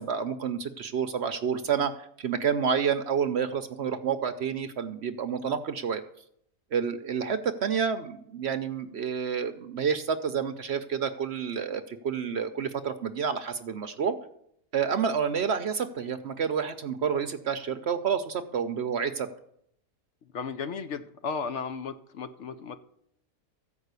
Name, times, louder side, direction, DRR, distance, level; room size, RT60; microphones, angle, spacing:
voice 1, 0.0-6.0 6.7-14.1 14.7-19.3, right 7 dB, 55° right, 9 dB, 0.8 m, -29 dB
voice 2, 20.3-22.8, left 5 dB, 60° left, 10 dB, 0.9 m, -35 dB
14.5 x 5.4 x 8.1 m, 0.73 s
omnidirectional pair, 1.5 m